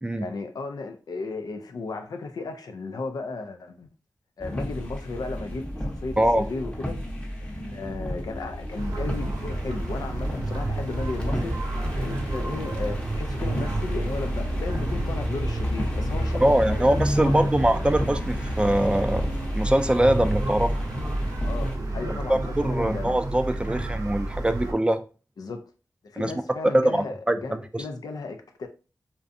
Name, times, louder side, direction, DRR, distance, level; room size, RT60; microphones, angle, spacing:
voice 1, 0.2-3.9 4.4-7.0 7.4-11.6 11.9-17.5 21.4-23.2 25.4-25.7 26.0-28.7, left 3 dB, 80° left, 0.4 m, -35 dB
sound 1, 4.4-21.8, left 1 dB, 15° left, 0.7 m, -31 dB
sound 2, 8.8-24.7, right 2 dB, 80° right, 0.7 m, -31 dB
voice 2, 16.4-19.3 19.6-20.7 22.1-25.0 26.2-26.3 26.7-27.8, right 1 dB, 15° right, 0.3 m, -23 dB
2.5 x 2.2 x 2.5 m
cardioid pair, 40°, 6 cm